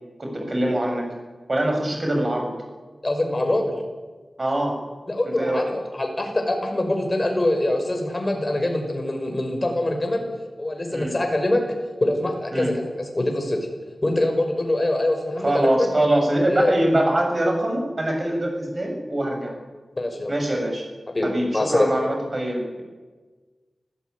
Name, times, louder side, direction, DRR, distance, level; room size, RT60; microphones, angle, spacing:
voice 1, 0.2-1.1 1.5-2.5 4.4-4.8 5.4-5.7 10.9-11.2 12.5-12.7 15.4-19.5 20.3-20.8 21.2-22.8, right 1 dB, 40° right, 1 dB, 7.1 m, -23 dB
voice 2, 3.0-3.7 5.1-10.3 10.6-11.6 12.0-13.6 14.0-15.9 16.5-16.7 20.0-20.3 21.1-22.0, left 1 dB, 30° left, 3 dB, 5.8 m, -24 dB
26.5 x 15.5 x 9.7 m, 1.4 s
wide cardioid pair, 90°, 0 cm